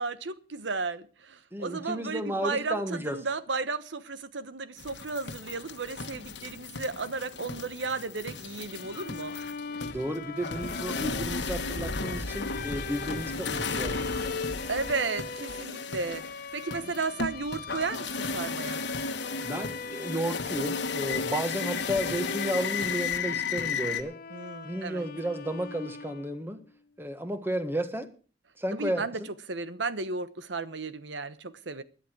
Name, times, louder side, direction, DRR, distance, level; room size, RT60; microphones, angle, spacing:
voice 1, 0.0-9.3 14.7-16.2 16.5-18.8 24.3-25.1 28.7-29.2 29.5-31.8, right 4 dB, 80° right, 1.1 m, -34 dB
voice 2, 1.5-3.2 9.8-14.4 19.4-24.1 24.6-26.6 27.0-28.1 28.6-29.0, right 1 dB, 15° right, 1.5 m, -33 dB
sound 1, 4.8-24.0, left 4 dB, 70° left, 1.5 m, -34 dB
Bowed string instrument, 8.7-26.5, left 5 dB, 55° left, 0.9 m, -41 dB
16.5 x 11.0 x 4.6 m
head